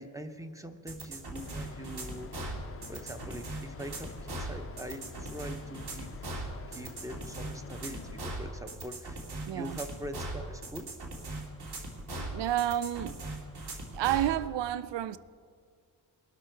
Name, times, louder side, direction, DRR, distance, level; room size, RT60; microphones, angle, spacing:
voice 1, 0.0-2.6 2.9-6.1 6.6-10.9, right 1 dB, 10° right, 0.6 m, -43 dB
sound 1, 0.9-14.3, right 2 dB, 65° right, 2.6 m, -39 dB
sound 2, 1.3-8.2, left 7 dB, 35° left, 0.4 m, -48 dB
voice 2, 9.5-9.8 12.2-13.2 13.9-15.2, right 12 dB, 90° right, 0.5 m, -30 dB
21.5 x 12.5 x 4.5 m
wide cardioid pair, 170°, 42 cm